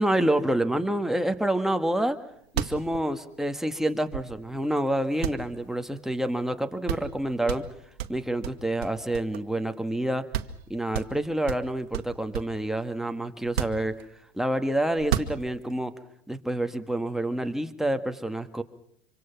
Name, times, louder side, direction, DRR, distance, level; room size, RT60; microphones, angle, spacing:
voice 1, 0.0-2.2 2.5-7.6 8.1-10.2 10.7-13.9 14.3-15.9 16.3-18.6, right 1 dB, ahead, 6 dB, 1.7 m, -27 dB
sound 1, 2.1-2.2 2.4-4.6 5.2-6.3 6.5-6.6 6.9-7.2 7.5-9.6 10.0-10.1 10.3-10.6 10.9-12.6 13.4-14.4 14.9-15.8, right 11 dB, 75° right, 1.5 m, -33 dB
25.5 x 25.5 x 5.9 m, 0.69 s
hypercardioid pair, 100°, 31 cm